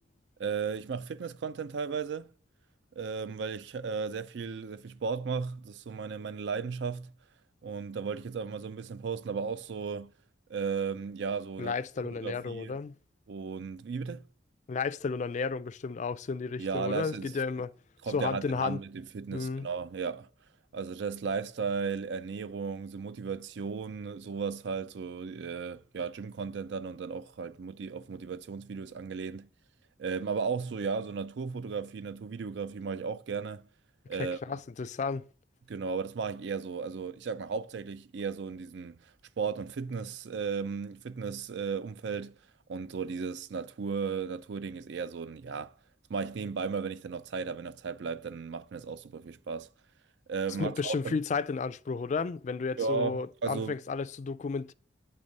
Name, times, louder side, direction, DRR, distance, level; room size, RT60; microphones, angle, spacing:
voice 1, 0.4-2.3 3.0-7.1 7.6-10.1 10.5-11.8 12.2-12.8 13.3-14.2 16.6-17.3 18.0-20.3 20.7-29.5 30.0-33.7 34.1-34.6 35.7-39.1 39.4-42.3 42.7-45.7 46.1-49.7 50.3-51.2 52.8-53.8, right 5 dB, 70° right, 0.4 m, -35 dB
voice 2, 11.6-12.9 14.7-17.7 18.1-18.8 19.3-19.7 34.4-35.3 50.6-54.7, left 4 dB, 40° left, 0.3 m, -33 dB
8.7 x 3.5 x 5.2 m
head